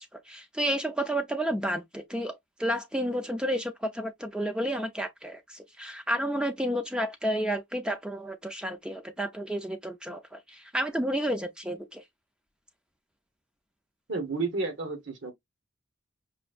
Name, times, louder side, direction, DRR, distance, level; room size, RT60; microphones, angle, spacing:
voice 1, 0.1-12.0, equal, 5° right, 0.3 m, -31 dB
voice 2, 14.1-15.3, right 3 dB, 70° right, 1.1 m, -31 dB
5.0 x 2.5 x 2.4 m
head